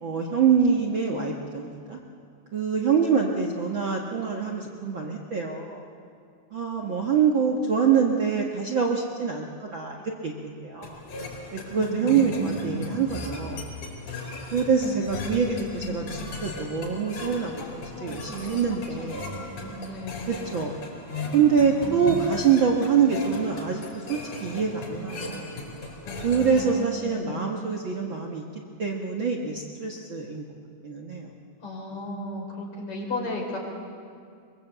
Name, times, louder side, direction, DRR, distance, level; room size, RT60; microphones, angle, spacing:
voice 1, 0.0-2.0 2.5-5.8 6.5-11.0 11.5-13.6 14.5-19.3 20.3-20.7 21.3-25.5 26.2-28.4 28.8-30.4 30.8-31.3, right 6 dB, 45° right, 0 dB, 1.8 m, -25 dB
sound 1, 10.8-26.8, left 2 dB, 80° left, 5.9 m, -38 dB
voice 2, 11.7-12.9 14.8-15.9 17.6-20.3 21.6-22.3 26.0-27.4 31.6-33.6, left 1 dB, 45° left, -1 dB, 5.1 m, -36 dB
23.5 x 23.5 x 8.1 m, 2.3 s
omnidirectional pair, 3.6 m